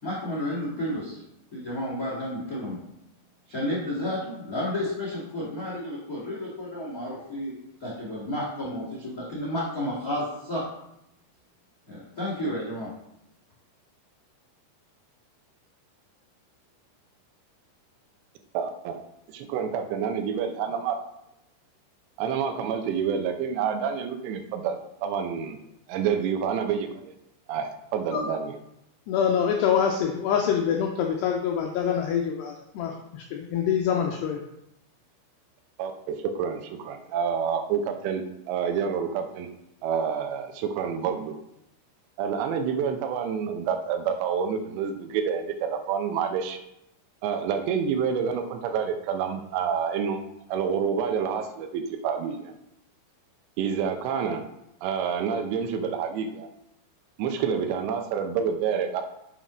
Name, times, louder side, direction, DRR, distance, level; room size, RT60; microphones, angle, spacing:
voice 1, 0.0-1.2 1.5-2.8 3.5-10.6 11.9-12.9, left 1 dB, 60° left, -6 dB, 0.9 m, -31 dB
voice 2, 18.5-19.0 19.3-21.0 22.2-25.6 25.9-27.1 27.5-28.6 35.8-39.5 39.8-41.3 42.2-46.6 47.2-50.2 50.5-52.5 53.6-54.4 54.8-56.5 57.2-59.0, right 7 dB, 80° right, 6 dB, 2.7 m, -28 dB
voice 3, 29.1-34.4, left 8 dB, 90° left, 2 dB, 2.4 m, -25 dB
7.5 x 6.1 x 5.1 m, 0.82 s
omnidirectional pair, 5.7 m